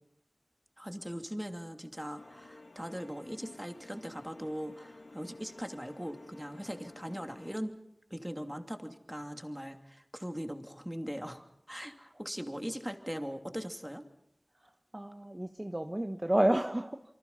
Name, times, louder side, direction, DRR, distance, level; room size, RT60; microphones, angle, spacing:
voice 1, 0.8-7.7 8.1-14.0, equal, 10° right, 6 dB, 2.8 m, -40 dB
sound 1, 2.2-7.6, left 2 dB, 90° left, 1.5 m, -53 dB
voice 2, 14.6-17.0, right 1 dB, 30° right, 7 dB, 1.1 m, -31 dB
28.5 x 24.5 x 5.6 m, 0.77 s
wide cardioid pair, 40°, 0 cm